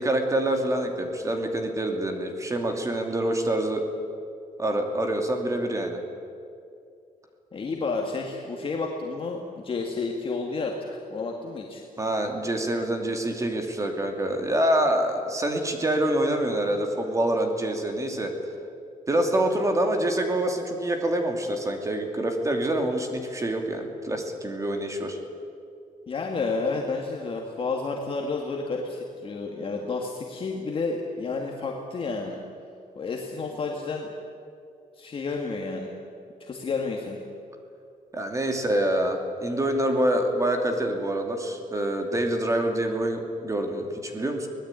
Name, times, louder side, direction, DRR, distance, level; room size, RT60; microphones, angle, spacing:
voice 1, 0.0-3.8 4.6-6.0 12.0-18.3 19.1-25.2 38.1-44.5, right 1 dB, 20° right, 4 dB, 2.7 m, -26 dB
voice 2, 7.5-11.8 26.1-32.4 33.0-34.1 35.0-35.9 36.5-37.2, left 4 dB, 35° left, 0 dB, 2.1 m, -30 dB
24.0 x 18.5 x 9.1 m, 2.5 s
wide cardioid pair, 160°, 15 cm